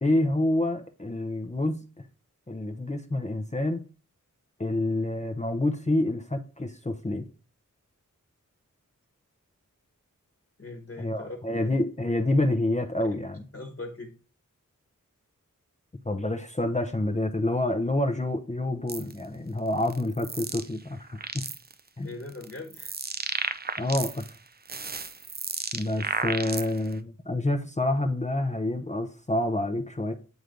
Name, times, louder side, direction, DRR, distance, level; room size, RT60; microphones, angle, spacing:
voice 1, 0.0-1.8 2.5-3.9 4.6-7.3 11.0-13.4 16.0-21.5 22.0-22.1 23.8-24.2 25.7-30.1, left 1 dB, 20° left, 0.7 m, -28 dB
voice 2, 10.6-11.7 13.5-14.1 22.0-23.0, left 2 dB, 40° left, 1.4 m, -40 dB
sound 1, 18.9-19.1 19.8-20.7 21.0-21.7 22.3-24.3 24.6-26.9, right 4 dB, 30° right, 0.5 m, -33 dB
8.0 x 3.3 x 3.8 m
wide cardioid pair, 50°, 32 cm